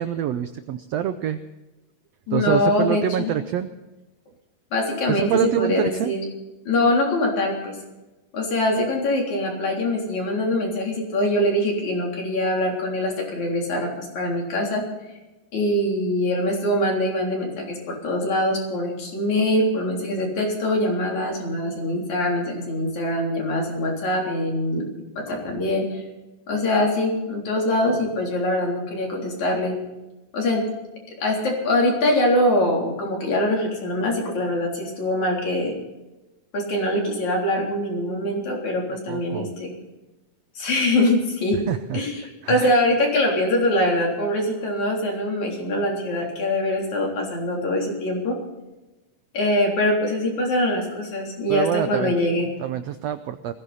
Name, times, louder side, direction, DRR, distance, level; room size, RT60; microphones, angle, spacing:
voice 1, 0.0-1.4 2.3-3.7 5.1-6.1 39.1-39.5 41.7-42.0 42.4-42.7 51.5-52.1 52.6-53.5, right 10 dB, 85° right, 10 dB, 1.4 m, -26 dB
voice 2, 2.3-3.3 4.7-6.2 6.7-7.8 8.3-14.8 15.5-24.9 25.2-26.0 26.5-29.7 30.3-30.6 31.2-35.8 36.5-39.7 40.6-41.6 41.9-48.4 49.3-52.5, left 1 dB, 60° left, -1 dB, 4.9 m, -23 dB
20.5 x 15.5 x 4.2 m, 1.0 s
omnidirectional pair, 3.8 m